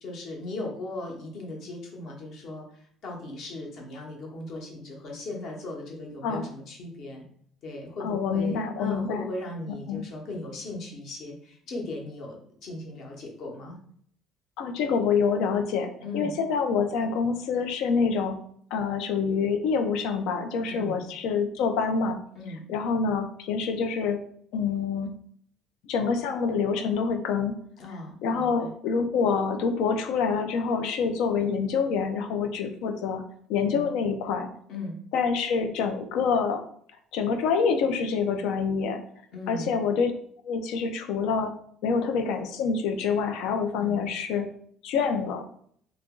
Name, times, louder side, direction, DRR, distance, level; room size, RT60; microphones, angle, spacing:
voice 1, 0.0-7.2 7.6-13.8 16.0-16.3 20.7-21.0 22.3-22.6 27.8-28.7 33.6-33.8 34.7-35.0 39.3-39.7 43.8-44.0, left 2 dB, 50° left, 0 dB, 0.9 m, -37 dB
voice 2, 8.0-9.3 9.9-10.0 14.6-18.4 18.7-22.2 22.7-24.2 24.5-25.1 25.9-27.5 28.2-33.2 33.5-34.5 35.1-36.6 37.1-39.0 39.5-40.1 40.4-41.5 41.8-44.5 44.8-45.4, left 5 dB, 75° left, 6 dB, 0.5 m, -26 dB
2.9 x 2.5 x 3.6 m, 0.62 s
cardioid pair, 155°, 0 cm